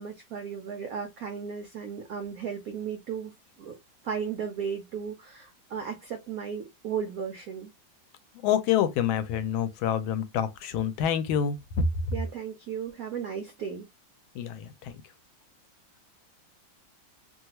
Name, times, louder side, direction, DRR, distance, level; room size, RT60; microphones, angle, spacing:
voice 1, 0.0-3.3 3.6-3.8 4.0-7.7 12.1-13.9, right 7 dB, 80° right, 0.7 m, -35 dB
voice 2, 8.3-11.8 14.3-14.9, left 9 dB, 80° left, 1.4 m, -27 dB
3.2 x 2.3 x 2.8 m
omnidirectional pair, 2.2 m